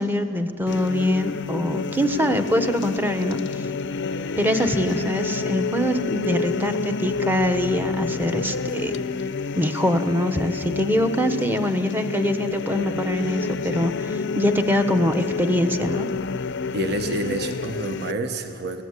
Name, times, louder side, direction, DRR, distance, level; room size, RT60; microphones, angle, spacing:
voice 1, 0.0-3.6 4.4-9.0 9.6-16.1, left 1 dB, 10° right, 8 dB, 1.0 m, -24 dB
sound 1, 0.7-18.1, left 4 dB, 60° left, 0.6 m, -29 dB
voice 2, 2.0-2.4 4.1-4.2 16.7-18.8, right 2 dB, 55° right, 7 dB, 1.2 m, -29 dB
22.5 x 17.5 x 8.2 m, 2.4 s
head